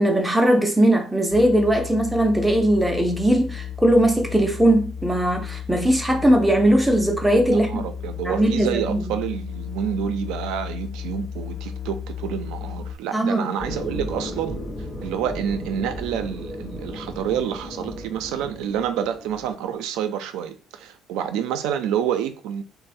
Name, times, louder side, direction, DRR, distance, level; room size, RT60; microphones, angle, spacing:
voice 1, 0.0-7.7 8.3-9.0 13.1-13.5, right 1 dB, 5° right, 0.4 m, -19 dB
sound 1, 1.3-13.0, left 9 dB, 80° left, 0.4 m, -34 dB
voice 2, 7.5-14.6 15.0-22.6, right 9 dB, 85° right, 0.4 m, -28 dB
sound 2, 13.6-19.6, equal, 35° left, 0.7 m, -34 dB
3.2 x 2.0 x 2.5 m
cardioid pair, 175°, 0 cm